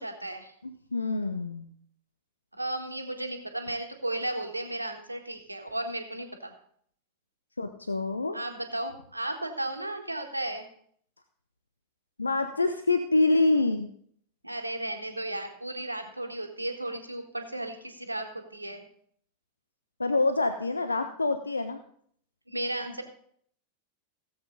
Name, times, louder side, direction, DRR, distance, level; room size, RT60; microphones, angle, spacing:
voice 1, 0.0-0.5 2.6-6.5 8.3-10.7 14.4-18.8 22.5-23.0, right 1 dB, 85° right, 5 dB, 1.6 m, -34 dB
voice 2, 0.6-1.7 7.6-8.4 12.2-13.9 20.0-21.8, left 3 dB, 80° left, 9 dB, 0.6 m, -26 dB
17.0 x 8.0 x 3.9 m, 0.63 s
figure-of-eight pair, 90°, 0 cm